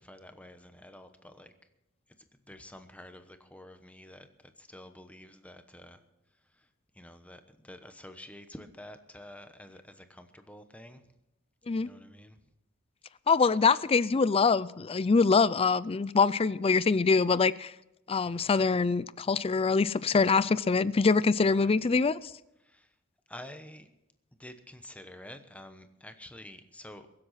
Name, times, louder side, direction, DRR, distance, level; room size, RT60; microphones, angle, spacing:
voice 1, 0.0-1.5 2.5-6.0 6.5-6.7 6.9-11.1 11.8-12.4 18.3-18.5 21.5-21.7 22.6-22.9 23.3-23.9 24.4-27.1, left 1 dB, 5° left, 1.0 m, -49 dB
voice 2, 13.3-17.7 18.1-22.2, left 4 dB, 25° left, 0.4 m, -24 dB
22.5 x 7.8 x 5.8 m
head